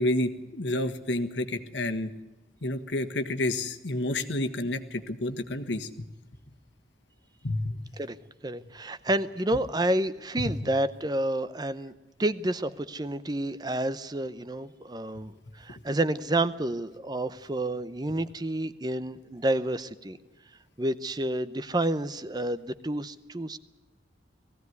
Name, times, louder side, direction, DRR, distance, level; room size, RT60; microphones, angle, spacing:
voice 1, 0.0-2.1 2.6-6.0 7.4-7.7, left 1 dB, 75° left, 7 dB, 1.5 m, -29 dB
voice 2, 8.4-11.9 12.2-20.2 20.8-23.6, right 1 dB, 20° right, 14 dB, 0.7 m, -29 dB
19.5 x 16.0 x 9.5 m, 1.1 s
head